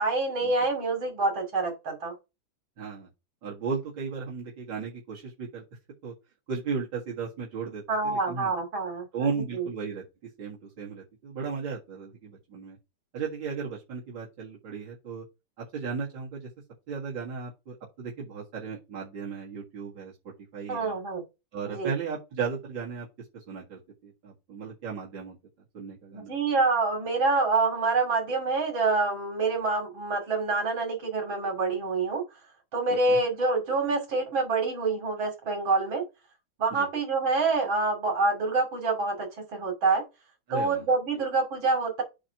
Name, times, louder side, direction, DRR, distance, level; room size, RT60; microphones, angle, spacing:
voice 1, 0.0-2.1 7.9-9.3 9.5-9.7 20.7-21.2 21.7-21.9 26.1-32.2 32.7-36.0 36.6-40.0 40.5-42.0, right 3 dB, 90° right, 3.3 m, -26 dB
voice 2, 2.8-3.1 3.4-5.6 6.0-6.1 6.5-8.5 9.1-10.0 10.4-12.8 13.1-15.2 15.6-16.5 16.9-20.9 21.5-23.1 23.3-25.4 25.7-26.3 33.1-33.2 36.7-36.9 40.5-40.9, right 5 dB, 70° right, 2.6 m, -35 dB
8.6 x 3.0 x 5.7 m
omnidirectional pair, 2.1 m